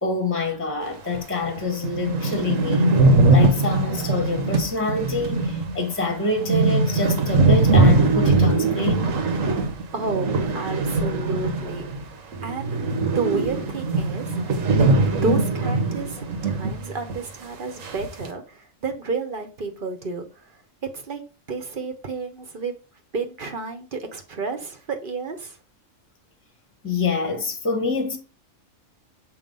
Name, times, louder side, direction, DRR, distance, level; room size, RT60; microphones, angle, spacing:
voice 1, 0.0-3.0 3.3-9.1 26.8-28.2, left 3 dB, 10° left, 1.1 m, -26 dB
sound 1, 1.1-1.2 1.6-1.7 1.8-12.1 12.3-16.8 17.1-17.2 17.8-18.3, right 3 dB, 75° right, 1.5 m, -21 dB
voice 2, 9.9-11.9 12.4-12.8 13.1-14.4 14.7-14.9 15.2-20.6 20.9-21.2 21.5-22.7 23.1-25.6, right 4 dB, 45° right, 1.0 m, -31 dB
7.1 x 2.8 x 5.3 m
omnidirectional pair, 1.3 m